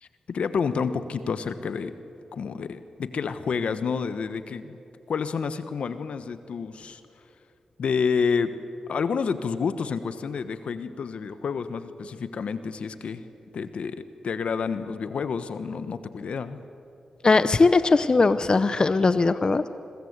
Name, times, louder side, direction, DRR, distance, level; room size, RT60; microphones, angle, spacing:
voice 1, 0.0-1.9 2.3-4.8 5.1-7.0 7.8-8.5 8.9-13.3 13.5-16.6, left 5 dB, 75° left, 11 dB, 1.2 m, -29 dB
voice 2, 17.2-19.7, left 3 dB, 45° left, 12 dB, 0.9 m, -20 dB
26.0 x 22.5 x 8.2 m, 2.7 s
cardioid pair, 50°, 2 cm